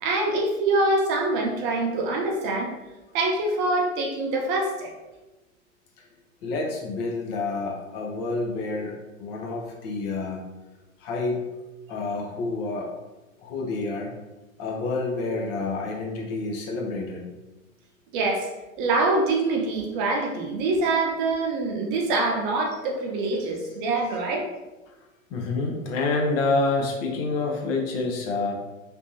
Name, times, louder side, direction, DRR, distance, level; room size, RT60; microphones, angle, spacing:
voice 1, 0.0-2.7 3.1-4.9 18.1-18.5 18.8-24.5, right 2 dB, 40° right, 0 dB, 0.8 m, -25 dB
voice 2, 6.4-10.4 11.0-11.5 11.9-12.9 13.4-14.1 14.6-17.3 24.9-25.0 25.3-28.5, left 3 dB, 45° left, 0 dB, 0.8 m, -28 dB
3.4 x 2.6 x 2.9 m, 1.1 s
hypercardioid pair, 105°, 41 cm